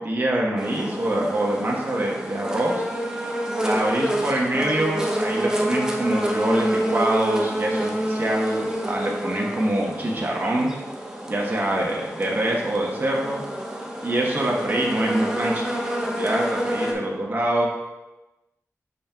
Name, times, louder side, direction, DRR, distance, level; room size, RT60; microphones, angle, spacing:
voice 1, 0.0-2.9 3.6-10.7 11.3-13.4 14.0-15.6 16.2-17.7, right 1 dB, 35° right, -3 dB, 1.1 m, -25 dB
sound 1, 0.6-16.9, right 1 dB, 10° right, 0.8 m, -28 dB
8.5 x 5.3 x 2.3 m, 1.1 s
wide cardioid pair, 85°, 6 cm